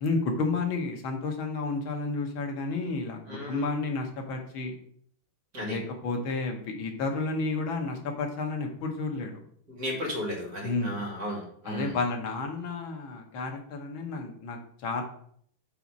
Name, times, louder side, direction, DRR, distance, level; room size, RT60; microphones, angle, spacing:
voice 1, 0.0-3.2 3.5-4.7 5.6-9.4 10.6-11.0 11.7-15.0, left 3 dB, 80° left, 3 dB, 1.8 m, -31 dB
voice 2, 3.3-3.7 5.5-5.8 9.7-12.0, equal, 45° right, -2 dB, 2.6 m, -34 dB
5.5 x 4.2 x 6.0 m, 0.62 s
omnidirectional pair, 2.2 m